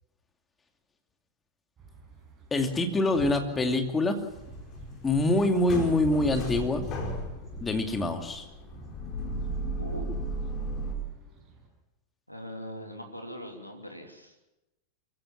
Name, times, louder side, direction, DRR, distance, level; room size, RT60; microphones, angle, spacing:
sound 1, 1.8-11.7, right 4 dB, 25° right, 7.2 m, -48 dB
voice 1, 2.5-4.2 5.0-6.9 7.6-8.5, left 2 dB, 15° left, 5 dB, 2.6 m, -25 dB
sound 2, 4.3-10.9, right 1 dB, 35° left, 5.0 m, -35 dB
voice 2, 12.3-14.3, equal, 90° left, 3 dB, 3.0 m, -41 dB
25.5 x 15.5 x 7.3 m, 0.97 s
figure-of-eight pair, 90°, 0 cm